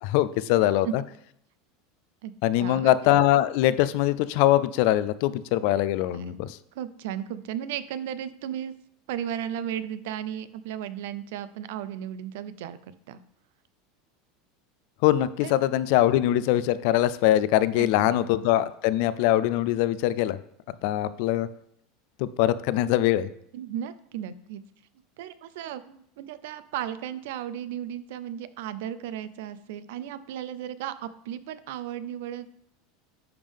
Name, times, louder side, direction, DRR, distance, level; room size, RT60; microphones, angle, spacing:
voice 1, 0.0-1.0 2.4-6.6 15.0-20.4 20.8-21.5 22.2-23.3, left 13 dB, 60° left, 16 dB, 0.3 m, -22 dB
voice 2, 2.6-2.9 6.1-6.2 6.7-8.7 9.1-13.2 15.4-15.5 17.7-17.9 23.5-24.6 25.2-32.5, right 10 dB, 75° right, 14 dB, 0.4 m, -35 dB
10.5 x 3.6 x 3.4 m, 0.72 s
supercardioid pair, 145°, 0 cm